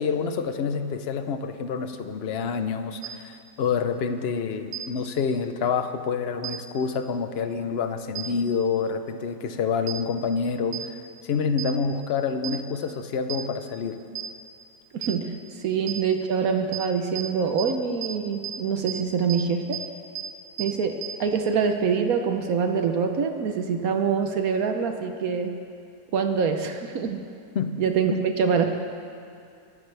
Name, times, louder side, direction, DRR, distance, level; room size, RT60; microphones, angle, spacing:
voice 1, 0.0-11.0 11.2-14.0 27.5-27.7 28.1-28.2, left 5 dB, 55° left, 8 dB, 0.7 m, -27 dB
sound 1, 3.0-3.1 4.7-4.8 6.4-6.5 8.2-8.3 9.9-10.0 10.7-10.8 11.6-11.7 12.4-12.5 13.3-13.4 14.2-14.3 15.0-15.1 15.9-16.0 16.7-16.8 17.2-17.3 17.6-17.7 18.0-18.1 18.4-18.5 18.9-19.0 19.3-19.4 19.7-19.8 20.2-20.3 20.6-20.7 21.0-21.1, right 12 dB, 90° right, 1.5 m, -31 dB
voice 2, 14.9-19.8 20.6-25.5 26.1-27.3 27.8-28.7, right 6 dB, 65° right, 6 dB, 1.2 m, -25 dB
22.5 x 12.5 x 3.4 m, 2.4 s
omnidirectional pair, 1.8 m